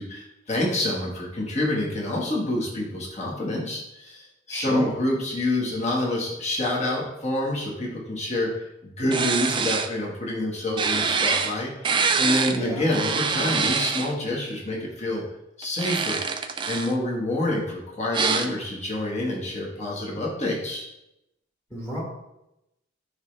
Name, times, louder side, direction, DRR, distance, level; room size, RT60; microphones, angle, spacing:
voice 1, 0.0-8.5 8.8-15.2 15.6-16.2 16.7-20.9, left 1 dB, 35° left, -3 dB, 1.5 m, -27 dB
voice 2, 4.5-4.9 12.5-12.8 21.7-22.0, right 1 dB, 15° left, -5 dB, 1.5 m, -29 dB
sound 1, 9.1-9.9 10.8-11.5 11.8-12.6 12.9-14.1 15.6-16.9 18.1-18.5, right 5 dB, 25° right, 0.4 m, -25 dB
9.6 x 3.3 x 3.3 m, 0.89 s
head